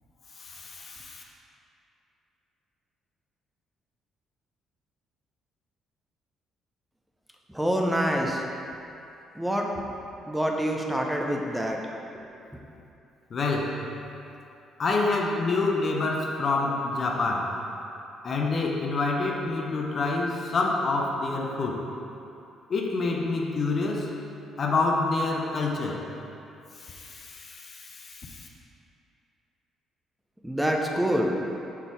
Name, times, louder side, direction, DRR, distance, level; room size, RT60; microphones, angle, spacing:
voice 1, 0.4-1.2 13.3-13.8 14.8-17.6 18.2-21.9 22.7-24.1 24.6-26.1 26.8-28.5, left 3 dB, 40° left, 0 dB, 0.6 m, -27 dB
voice 2, 7.5-8.4 9.3-9.9 10.3-11.8 12.5-12.6 30.4-31.4, equal, 5° right, 0 dB, 0.7 m, -26 dB
5.7 x 4.0 x 4.5 m, 2.7 s
figure-of-eight pair, 45°, 0 cm